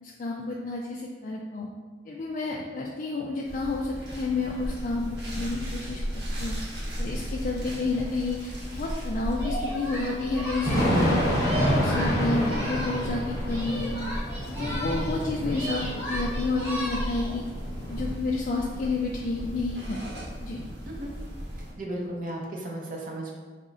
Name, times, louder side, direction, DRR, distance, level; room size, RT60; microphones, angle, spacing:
voice 1, 0.0-1.7 2.1-6.6 7.0-11.2 11.7-17.4 17.9-20.0 20.4-20.6, left 3 dB, 45° left, -2 dB, 0.3 m, -30 dB
sound 1, 3.4-21.7, equal, 70° right, 1.0 m, -39 dB
Thunder / Rain, 4.6-18.1, equal, 20° left, 0.7 m, -29 dB
Singing, 9.3-13.2 13.4-15.2 15.5-17.4, equal, 10° right, 1.2 m, -35 dB
voice 2, 21.8-23.4, right 1 dB, 50° right, -1 dB, 0.7 m, -35 dB
3.6 x 2.1 x 3.9 m, 1.4 s
head